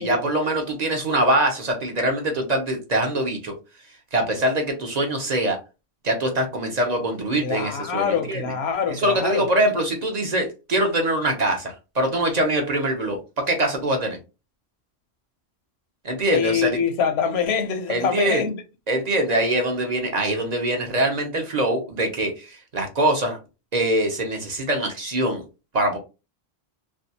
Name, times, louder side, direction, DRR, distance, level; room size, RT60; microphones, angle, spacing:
voice 1, 0.0-3.5 4.1-5.6 6.0-8.5 8.9-14.2 16.0-16.8 17.9-18.4 18.9-23.4 23.7-25.4 25.7-26.0, right 1 dB, 45° right, 0.7 m, -23 dB
voice 2, 7.3-9.5 16.3-18.6, left 7 dB, 80° left, 0.8 m, -24 dB
2.5 x 2.2 x 2.6 m
omnidirectional pair, 1.1 m